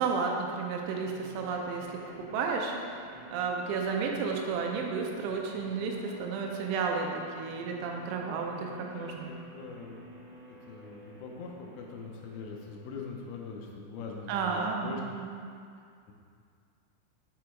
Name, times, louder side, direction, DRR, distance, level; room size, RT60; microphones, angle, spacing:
voice 1, 0.0-1.9 2.2-2.7 3.3-9.3 14.3-15.4, right 5 dB, 85° right, 1 dB, 3.0 m, -32 dB
sound 1, 0.8-13.8, right 2 dB, 70° right, 1.1 m, -50 dB
voice 2, 8.5-15.0, left 4 dB, 80° left, 0 dB, 2.7 m, -43 dB
7.1 x 5.0 x 4.5 m, 2.3 s
omnidirectional pair, 5.3 m